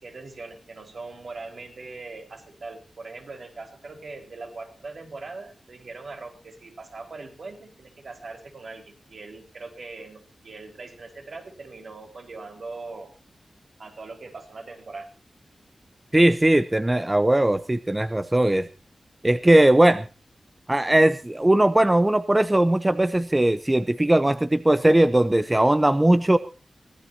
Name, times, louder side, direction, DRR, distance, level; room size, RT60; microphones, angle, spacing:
voice 1, 0.0-13.1 13.8-15.1, right 3 dB, 60° right, 4 dB, 4.4 m, -41 dB
voice 2, 16.1-18.7 19.2-20.1 20.7-26.4, right 1 dB, 15° right, 13 dB, 0.7 m, -19 dB
23.5 x 16.5 x 2.7 m, 0.33 s
wide cardioid pair, 130°, 0 cm